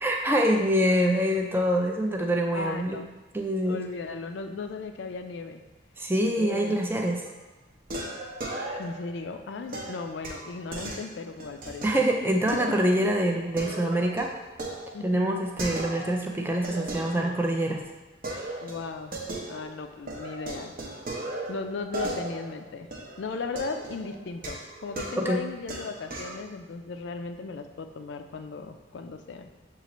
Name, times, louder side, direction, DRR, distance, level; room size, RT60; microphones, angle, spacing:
voice 1, 0.0-3.0 3.3-3.8 6.0-7.2 11.8-14.3 15.0-17.8 25.2-25.4, right 1 dB, 10° right, 1 dB, 0.4 m, -25 dB
voice 2, 2.5-3.0 3.7-5.6 6.4-6.9 8.8-12.0 14.9-15.3 18.6-19.1 19.5-20.7 21.5-22.9 23.2-29.5, left 4 dB, 65° left, 7 dB, 0.4 m, -36 dB
sound 1, 6.9-7.4 7.9-9.1 9.7-12.0 12.5-13.0 13.3-16.3 16.6-17.8 18.2-19.8 20.1-26.4, right 2 dB, 45° right, 0.7 m, -37 dB
6.9 x 2.4 x 3.0 m, 1.1 s
head